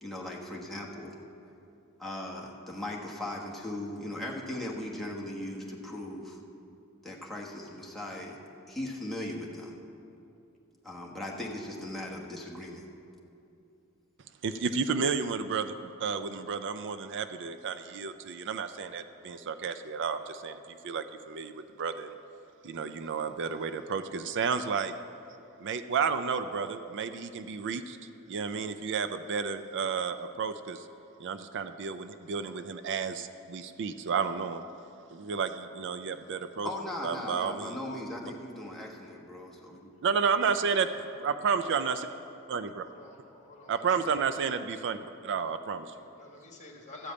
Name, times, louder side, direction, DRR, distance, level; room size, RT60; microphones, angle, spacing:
voice 1, 0.0-1.2 2.0-6.4 7.0-8.4 8.7-9.8 10.8-12.8 36.6-39.9 40.4-40.5, left 1 dB, ahead, -3 dB, 1.2 m, -38 dB
voice 2, 14.4-21.5 21.8-22.1 22.6-24.9 25.6-28.0 28.3-30.8 31.2-34.6 35.1-36.7 37.0-37.8 40.0-40.9 41.2-41.9 42.5-42.8 43.7-45.0 45.2-45.9, right 6 dB, 55° right, 10 dB, 0.4 m, -31 dB
voice 3, 42.8-44.0 44.3-44.4 45.9-47.1, left 2 dB, 35° left, 0 dB, 1.6 m, -48 dB
13.0 x 5.1 x 8.4 m, 2.6 s
head